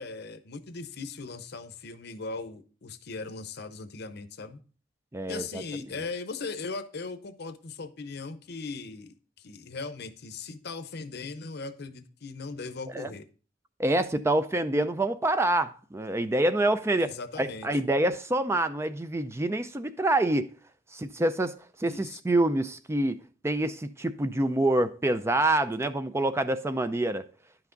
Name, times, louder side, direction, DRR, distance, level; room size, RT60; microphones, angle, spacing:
voice 1, 0.0-4.6 5.3-13.2 17.0-17.7 21.8-22.2, left 4 dB, 60° left, 0.8 m, -39 dB
voice 2, 5.1-5.6 12.9-13.1 13.8-17.1 17.4-20.5 20.9-21.5 21.8-23.2 23.4-27.2, right 1 dB, 15° right, 0.4 m, -26 dB
10.5 x 5.9 x 3.8 m
head